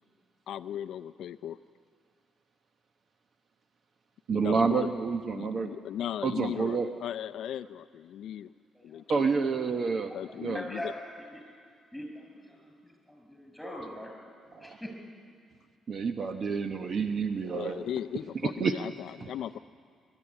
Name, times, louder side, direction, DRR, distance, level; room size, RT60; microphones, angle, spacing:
voice 1, 0.5-1.6 4.3-4.9 5.3-8.5 8.8-9.3 10.1-10.9 17.5-19.6, left 10 dB, 75° left, 10 dB, 0.4 m, -37 dB
voice 2, 4.3-5.7 6.2-6.9 9.1-10.1 10.4-10.6 14.5-14.8 15.9-17.8 18.6-18.7, right 5 dB, 50° right, 7 dB, 0.9 m, -28 dB
voice 3, 10.1-11.4 11.9-14.1 14.6-14.9, equal, 5° left, 2 dB, 6.4 m, -42 dB
21.0 x 12.5 x 9.8 m, 2.2 s
cardioid pair, 90°, 0 cm